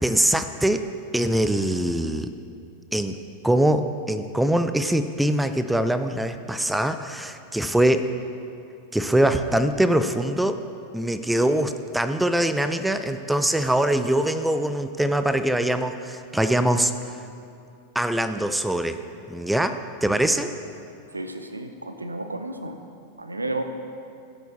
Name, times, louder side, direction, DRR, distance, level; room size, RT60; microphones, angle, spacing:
voice 1, 0.0-0.8 1.1-2.3 2.9-3.1 3.4-8.1 8.9-10.6 10.9-17.1 18.0-19.0 19.3-20.5, right 1 dB, 5° right, 10 dB, 0.4 m, -23 dB
voice 2, 21.1-22.8 23.2-23.6, right 2 dB, 80° right, 8 dB, 0.6 m, -32 dB
15.5 x 8.1 x 2.8 m, 2.5 s
figure-of-eight pair, 90°, 0 cm